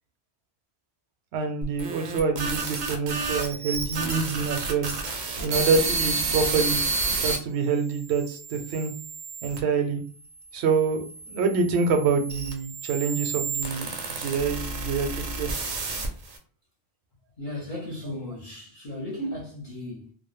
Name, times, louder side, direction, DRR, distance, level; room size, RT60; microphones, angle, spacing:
voice 1, 1.3-4.9 5.4-6.8 7.2-8.9 9.4-10.0 10.5-15.5, right 5 dB, 80° right, 0.8 m, -26 dB
sound 1, 1.6-7.4 8.0-9.6 10.4-16.4, right 4 dB, 55° right, 0.5 m, -30 dB
voice 2, 17.4-20.1, left 1 dB, 50° left, 0.8 m, -35 dB
2.1 x 2.0 x 3.0 m
omnidirectional pair, 1.1 m